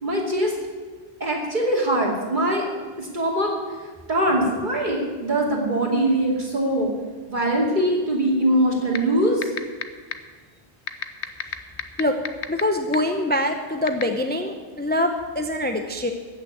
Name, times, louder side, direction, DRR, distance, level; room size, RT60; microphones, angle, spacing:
voice 1, 0.0-0.5 1.2-2.6 3.0-3.5 4.1-6.9 7.3-9.5, right 1 dB, 45° right, -2 dB, 2.8 m, -22 dB
sound 1, 8.9-9.0 9.4-9.8 10.1-10.2 10.9-12.6 12.9-13.0 13.9-14.0, left 9 dB, 80° left, 1.1 m, -25 dB
voice 2, 12.5-16.1, left 1 dB, 10° left, 5 dB, 0.7 m, -24 dB
14.5 x 6.6 x 8.7 m, 1.5 s
omnidirectional pair, 1.1 m